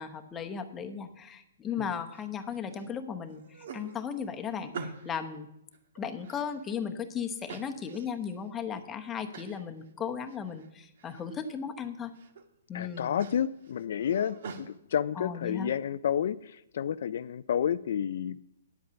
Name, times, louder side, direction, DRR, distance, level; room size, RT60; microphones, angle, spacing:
voice 1, 0.0-5.5 6.0-12.1 12.7-13.2 15.2-15.7, left 7 dB, 15° left, 6 dB, 0.9 m, -36 dB
sound 1, 2.1-2.9 3.3-5.3 5.7-6.9 7.5-8.3 8.7-8.8 9.3-9.6 10.0-10.7 11.0-11.5 12.0-12.4 12.8-14.7, right 5 dB, 60° right, 1.4 m, -45 dB
voice 2, 12.7-18.4, left 9 dB, 60° left, 14 dB, 0.3 m, -30 dB
10.0 x 8.0 x 6.9 m, 0.82 s
hypercardioid pair, 155°, 0 cm